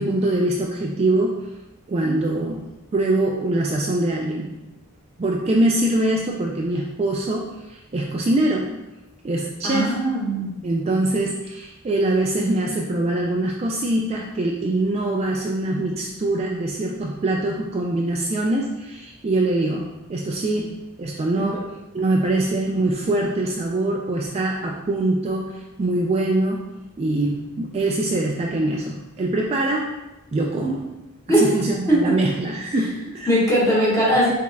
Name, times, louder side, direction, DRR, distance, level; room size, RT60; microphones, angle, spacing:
voice 1, 0.0-1.4 1.9-2.7 2.9-4.5 5.2-8.7 9.2-10.0 10.6-20.7 21.0-21.6 21.9-26.6 27.0-29.9 30.3-30.9 31.3-33.4, right 2 dB, 30° right, -1 dB, 0.3 m, -23 dB
voice 2, 9.6-10.5 21.3-21.5 31.3-31.4 31.9-32.0 33.3-34.3, right 1 dB, 15° left, -6 dB, 1.3 m, -19 dB
5.1 x 3.7 x 2.2 m, 0.97 s
head